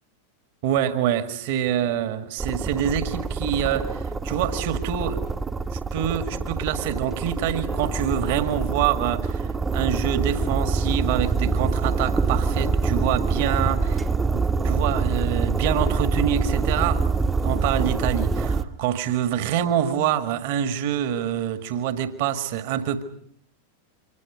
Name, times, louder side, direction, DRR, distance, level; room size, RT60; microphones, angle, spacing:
voice 1, 0.6-5.2 5.7-17.0 17.4-23.0, right 10 dB, 50° right, 1.9 m, -26 dB
sound 1, 2.4-18.6, right 4 dB, 15° right, 1.1 m, -25 dB
29.0 x 25.0 x 5.1 m
figure-of-eight pair, 90°, 0 cm